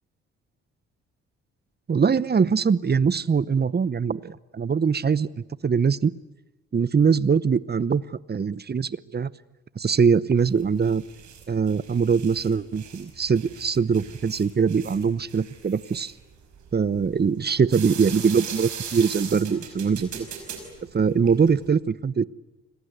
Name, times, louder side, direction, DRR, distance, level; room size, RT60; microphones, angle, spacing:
voice 1, 1.9-6.1 6.7-8.0 8.3-9.3 9.8-11.0 11.5-16.1 16.7-20.3 20.9-22.3, right 6 dB, 35° right, 18 dB, 0.9 m, -22 dB
sound 1, 10.4-21.7, right 7 dB, 75° right, 5.5 m, -40 dB
29.0 x 21.5 x 8.1 m, 1.0 s
supercardioid pair, 60°, 29 cm